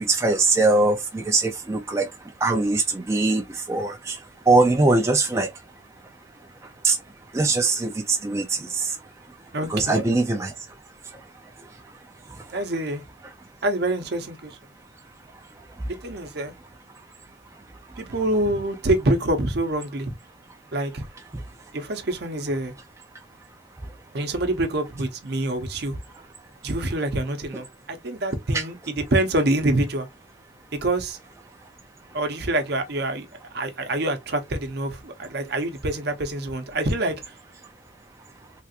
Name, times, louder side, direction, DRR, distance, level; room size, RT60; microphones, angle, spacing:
voice 1, 0.0-2.1 2.4-3.4 3.7-4.2 4.5-5.5 6.8-7.0 7.3-8.9 9.7-10.5 28.5-28.6, right 3 dB, 15° right, 0.3 m, -21 dB
voice 2, 9.5-10.0 12.5-13.0 13.6-14.6 15.9-16.5 18.0-20.1 20.7-21.1 21.7-22.7 24.1-26.0 26.6-28.7 29.1-30.1 30.8-31.2 32.1-33.3 33.5-37.1, right 1 dB, 55° right, 0.7 m, -26 dB
3.3 x 2.4 x 2.7 m
head